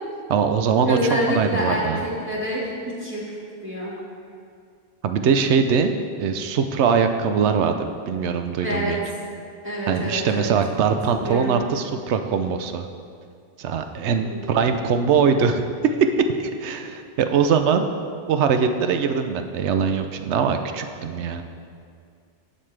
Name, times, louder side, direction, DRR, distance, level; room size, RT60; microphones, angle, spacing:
voice 1, 0.3-1.0 1.3-2.0 5.0-9.0 9.9-12.9 13.6-15.6 16.4-17.9 18.3-21.4, right 6 dB, 85° right, 7 dB, 0.9 m, -22 dB
voice 2, 0.8-3.2 3.6-3.9 8.6-9.0 9.6-10.5 11.1-11.6 14.2-14.6, equal, 10° right, -6 dB, 1.8 m, -27 dB
11.0 x 6.5 x 3.3 m, 2.2 s
omnidirectional pair, 1.1 m